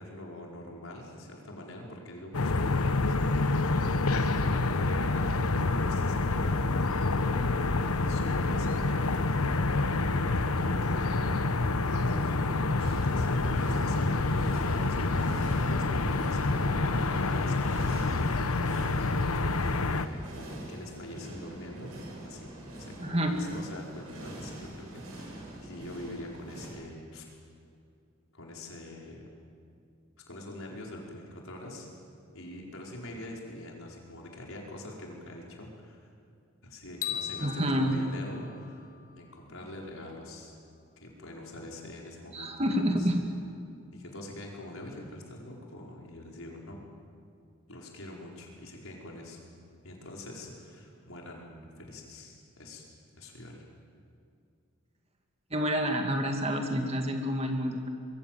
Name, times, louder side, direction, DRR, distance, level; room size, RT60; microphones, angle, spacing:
voice 1, 0.0-4.3 4.6-6.5 7.6-9.4 10.1-11.2 11.9-12.6 13.0-15.0 15.4-16.9 17.2-18.8 19.9-21.9 22.2-27.3 28.3-29.3 30.3-31.9 32.3-36.1 36.6-38.9 39.1-40.5 41.0-43.1 43.9-46.8 47.7-49.4 49.8-52.8 53.2-53.6, left 1 dB, 70° left, -1 dB, 5.0 m, -44 dB
sound 1, 2.3-20.1, left 3 dB, 85° left, 1.1 m, -27 dB
sound 2, 12.8-26.7, right 1 dB, 90° right, 6.6 m, -45 dB
voice 2, 23.0-23.4 37.4-37.9 42.3-43.2 55.5-57.9, equal, 30° right, 3 dB, 2.2 m, -28 dB
sound 3, 37.0-39.3, left 9 dB, 40° left, 1.9 m, -39 dB
25.5 x 22.5 x 7.7 m, 2.4 s
head